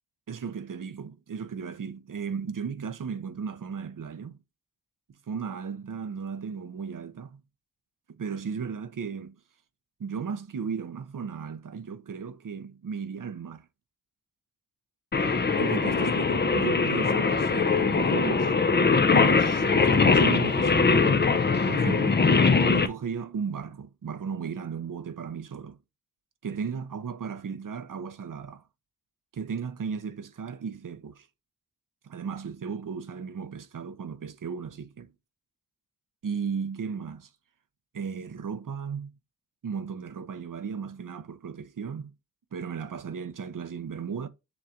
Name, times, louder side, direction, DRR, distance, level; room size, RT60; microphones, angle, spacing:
voice 1, 0.3-4.4 5.3-7.4 8.1-9.4 10.0-13.7 15.6-18.5 19.1-21.2 21.7-22.2 22.7-25.8 26.4-28.6 29.3-31.3 32.0-35.1 36.2-37.3 37.9-39.1 39.6-42.1 42.5-44.3, right 6 dB, 60° right, 0.7 m, -35 dB
Singing, 15.1-22.9, left 4 dB, 30° left, 0.5 m, -22 dB
7.0 x 3.1 x 2.4 m
wide cardioid pair, 80°, 36 cm